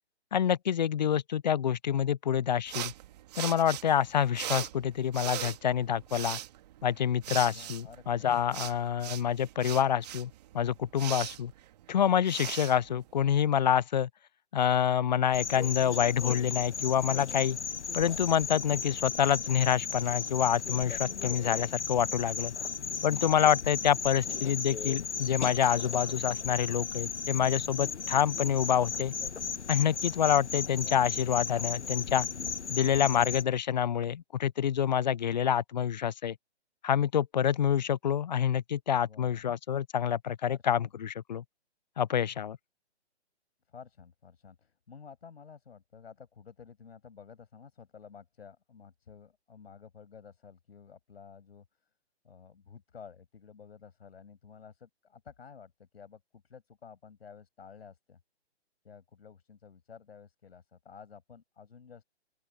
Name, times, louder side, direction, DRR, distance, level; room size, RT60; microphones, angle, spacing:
voice 1, 0.3-2.9 3.4-6.4 6.8-11.5 11.9-14.1 14.5-17.6 17.9-22.5 23.0-29.1 29.7-32.3 32.7-36.3 36.8-41.4 42.0-42.6, left 9 dB, 40° left, 0.4 m, -27 dB
sound 1, 2.7-13.6, right 13 dB, 35° right, 2.4 m, -40 dB
voice 2, 7.5-8.4 39.0-39.5 40.5-40.9 43.7-51.7 52.2-58.2 58.8-62.0, left 6 dB, 65° left, 5.8 m, -52 dB
sound 2, 15.3-33.4, left 6 dB, 85° left, 0.8 m, -35 dB
open air
figure-of-eight pair, 140°, 34 cm